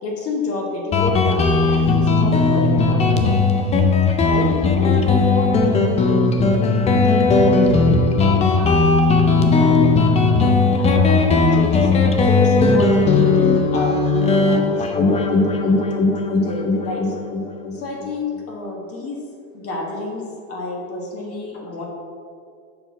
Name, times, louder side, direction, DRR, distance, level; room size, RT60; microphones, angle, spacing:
voice 1, 0.0-3.3 4.2-6.3 6.6-8.0 8.4-9.9 10.8-15.8 16.1-17.1 17.7-19.2 19.5-21.8, left 2 dB, 35° left, -1 dB, 1.3 m, -29 dB
Guitar, 0.9-18.1, left 3 dB, 15° left, 0.4 m, -17 dB
7.0 x 3.9 x 5.9 m, 2.3 s
supercardioid pair, 125°, 41 cm